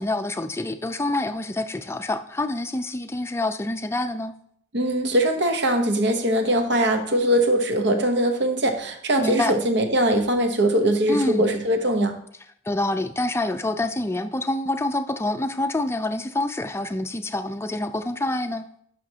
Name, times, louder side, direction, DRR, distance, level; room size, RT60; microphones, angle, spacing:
voice 1, 0.0-4.3 9.2-9.5 11.1-11.4 12.7-18.7, left 2 dB, 15° left, 9 dB, 0.4 m, -26 dB
voice 2, 4.7-12.2, right 1 dB, 65° right, 6 dB, 1.0 m, -21 dB
11.0 x 6.2 x 2.9 m, 0.66 s
head